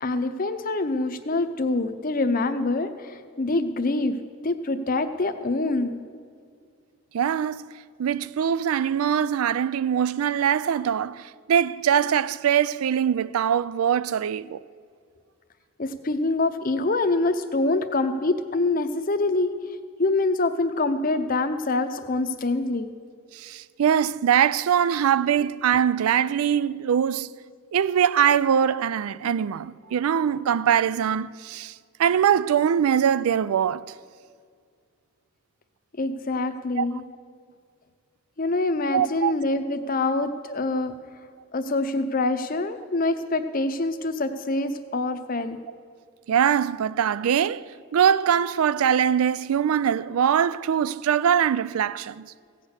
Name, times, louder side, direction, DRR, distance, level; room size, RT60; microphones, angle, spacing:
voice 1, 0.0-4.2 4.4-6.0 15.8-19.5 20.0-22.9 36.0-37.0 38.4-40.9 41.5-45.6, left 2 dB, 40° left, 0.7 m, -25 dB
voice 2, 7.1-14.6 23.3-27.3 27.7-31.7 32.0-33.8 36.8-36.9 38.9-39.3 46.3-47.6 47.9-52.3, right 8 dB, 80° right, 0.4 m, -22 dB
16.0 x 6.5 x 8.1 m
head